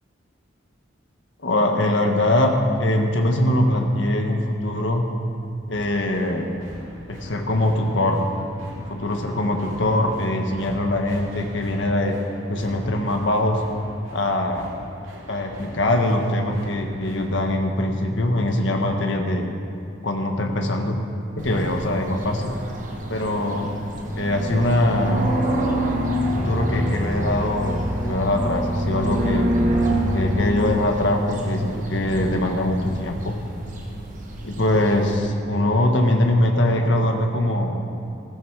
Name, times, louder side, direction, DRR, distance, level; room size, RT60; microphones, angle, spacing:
voice 1, 1.4-5.0 5.7-6.4 7.1-8.2 8.9-12.1 12.5-13.6 14.1-14.7 15.3-19.4 20.0-21.0 21.4-22.5 23.1-23.7 24.1-25.3 26.3-29.5 30.1-33.3 34.4-37.8, left 1 dB, 70° left, 3 dB, 1.4 m, -22 dB
sound 1, 5.7-17.6, equal, 85° right, 2.2 m, -42 dB
sound 2, 21.4-35.2, equal, 40° right, 1.8 m, -26 dB
14.5 x 13.5 x 4.7 m, 2.6 s
head